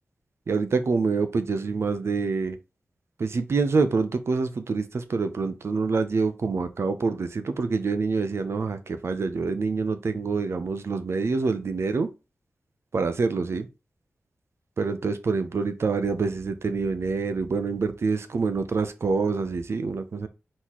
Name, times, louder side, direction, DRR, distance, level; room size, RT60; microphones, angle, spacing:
voice 1, 0.5-2.6 3.2-12.1 12.9-13.7 14.8-20.3, right 4 dB, 65° right, 0.6 m, -26 dB
4.1 x 3.8 x 3.0 m
cardioid pair, 45°, 5 cm